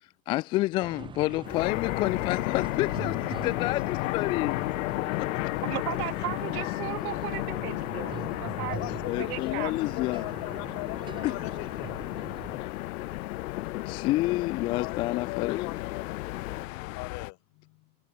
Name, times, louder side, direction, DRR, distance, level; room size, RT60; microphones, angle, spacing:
voice 1, 0.0-4.6 5.2-5.5 9.1-10.3 11.2-11.3 12.5-12.7 13.9-15.7, left 18 dB, 15° left, 0.3 m, -29 dB
sound 1, 0.8-12.6, right 7 dB, 10° right, 1.0 m, -44 dB
sound 2, 1.4-16.7, left 17 dB, 80° left, 2.7 m, -37 dB
ambulance-plane, 1.6-17.3, left 20 dB, 60° left, 2.1 m, -34 dB
voice 2, 5.6-9.7, right 17 dB, 90° right, 1.5 m, -36 dB
voice 3, 8.7-12.0 14.8-16.2 16.9-17.9, left 30 dB, 40° left, 5.8 m, -40 dB
supercardioid pair, 175°, 43 cm